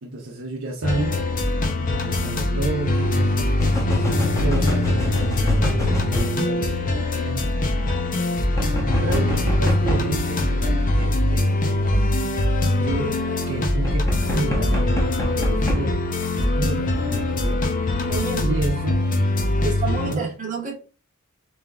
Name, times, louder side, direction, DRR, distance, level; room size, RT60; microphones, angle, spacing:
voice 1, 0.0-1.2 1.8-8.0 8.4-12.4 12.8-17.6 17.9-18.1 18.4-19.1 19.6-20.4, right 3 dB, 60° right, 0.8 m, -32 dB
sound 1, 0.8-20.1, left 2 dB, 40° left, 0.7 m, -23 dB
sound 2, 1.6-1.7 3.6-6.4 8.5-10.1 13.8-15.9, left 1 dB, 15° left, 1.0 m, -25 dB
voice 2, 18.1-18.5 19.6-20.7, right 4 dB, 35° right, 1.2 m, -29 dB
3.5 x 3.3 x 3.5 m
head